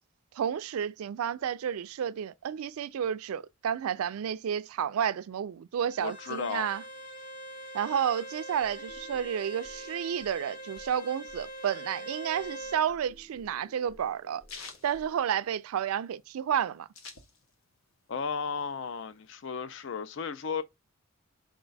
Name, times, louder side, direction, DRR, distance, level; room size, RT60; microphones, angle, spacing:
voice 1, 0.3-6.8 7.7-14.4 14.8-16.9, right 8 dB, 80° right, 0.3 m, -31 dB
Bowed string instrument, 5.9-12.8, right 1 dB, 40° left, 0.9 m, -43 dB
voice 2, 6.0-6.7 18.1-20.6, left 6 dB, 60° left, 0.4 m, -34 dB
sound 1, 8.6-15.4, left 1 dB, ahead, 0.8 m, -57 dB
sound 2, 12.8-15.9 16.2-16.3 16.5-17.8 18.2-19.3, left 4 dB, 75° left, 0.8 m, -48 dB
4.8 x 2.2 x 3.9 m
head